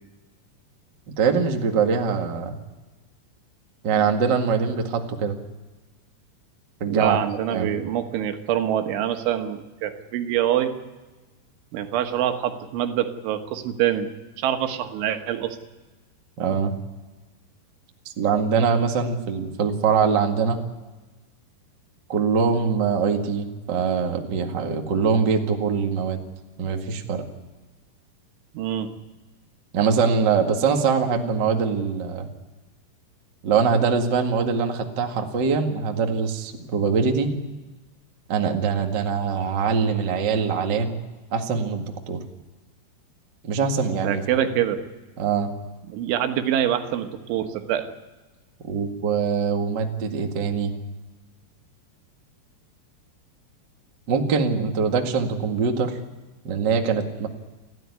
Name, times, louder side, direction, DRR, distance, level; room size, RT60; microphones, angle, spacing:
voice 1, 1.2-2.5 3.8-5.4 6.8-7.2 7.5-7.7 16.4-16.7 18.2-20.6 22.1-26.2 26.6-27.2 29.7-32.3 33.4-37.3 38.3-41.0 41.3-42.2 43.4-44.5 45.2-45.5 48.7-50.7 54.1-56.0 56.4-57.3, right 5 dB, 60° right, 3 dB, 1.1 m, -23 dB
voice 2, 6.9-10.7 11.7-14.1 14.4-15.6 28.6-28.9 44.0-44.8 45.9-47.9, right 10 dB, 85° right, 7 dB, 3.8 m, -25 dB
29.5 x 12.5 x 9.6 m, 1.2 s
omnidirectional pair, 5.4 m